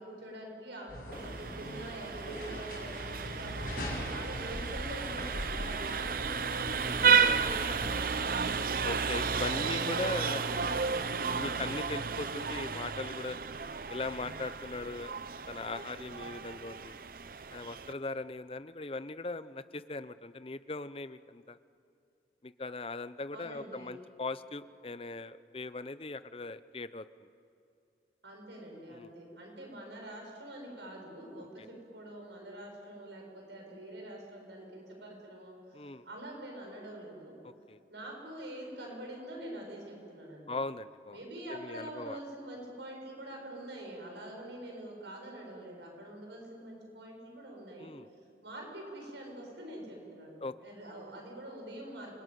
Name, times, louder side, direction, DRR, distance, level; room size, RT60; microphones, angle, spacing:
voice 1, 0.0-8.4 9.4-11.6 23.3-23.9 28.2-37.4 37.9-40.6 41.1-47.9 48.4-52.1, right 1 dB, 80° right, 0 dB, 7.2 m, -45 dB
sound 1, 0.9-8.6, left 1 dB, 50° left, 6.6 m, -42 dB
Vehicle horn car horn honking, 1.1-17.9, right 6 dB, 50° right, 0.8 m, -33 dB
voice 2, 6.8-8.0 8.8-10.4 11.2-13.4 13.9-15.2 15.5-17.0 17.5-21.6 22.4-27.3 28.9-29.1 31.6-31.7 35.7-36.0 37.4-37.8 40.5-41.2 41.5-42.2 47.8-48.1 50.4-50.5, left 3 dB, 30° left, 14 dB, 0.7 m, -39 dB
28.5 x 21.0 x 9.3 m, 2.5 s
head